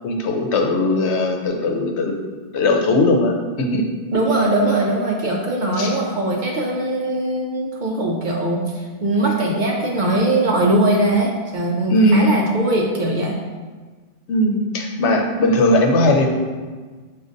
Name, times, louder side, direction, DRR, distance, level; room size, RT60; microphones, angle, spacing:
voice 1, 0.0-2.1 2.5-3.8 5.8-5.9 11.9-12.4 14.3-16.3, left 1 dB, 85° left, 2 dB, 0.9 m, -18 dB
voice 2, 4.1-13.4, right 1 dB, 55° right, -1 dB, 0.6 m, -20 dB
6.2 x 2.4 x 2.5 m, 1.4 s
omnidirectional pair, 1.1 m